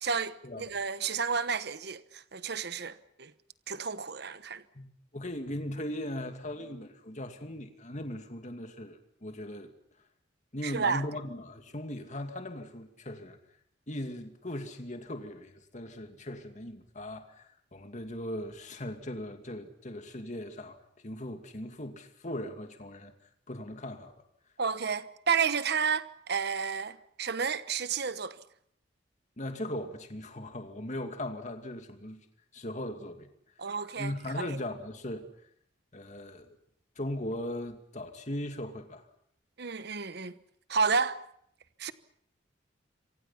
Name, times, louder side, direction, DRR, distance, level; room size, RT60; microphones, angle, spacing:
voice 1, 0.0-3.3 3.7-4.6 10.6-11.0 24.6-28.4 33.6-34.6 39.6-40.3 40.7-41.2 41.8-41.9, right 5 dB, 55° right, 1.1 m, -31 dB
voice 2, 4.7-9.7 10.5-13.4 13.9-20.8 21.0-23.1 23.5-24.1 29.4-32.2 32.5-33.3 33.6-35.2 35.9-36.6 37.0-39.0, left 1 dB, 35° left, 2.5 m, -39 dB
27.0 x 24.0 x 5.8 m
head